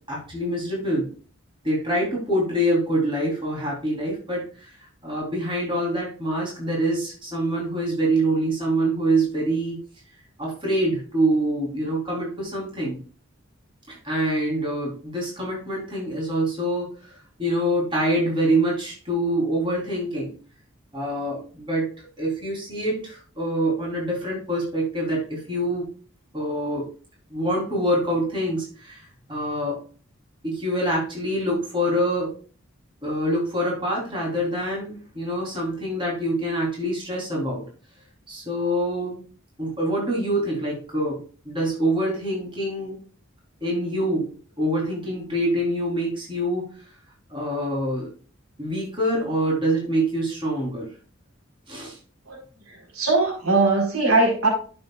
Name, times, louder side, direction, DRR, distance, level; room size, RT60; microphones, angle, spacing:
voice 1, 0.1-1.1 1.6-9.8 10.4-13.0 13.9-20.3 20.9-21.9 22.2-25.9 26.3-26.9 27.3-29.8 30.4-32.3 33.0-37.6 38.3-39.2 39.6-43.0 43.6-46.9 47.3-48.1 48.6-50.9 51.7-52.0, right 1 dB, 25° right, -3 dB, 3.7 m, -25 dB
voice 2, 52.7-54.5, right 2 dB, 90° right, 0 dB, 4.2 m, -21 dB
12.0 x 7.0 x 2.4 m, 0.40 s
head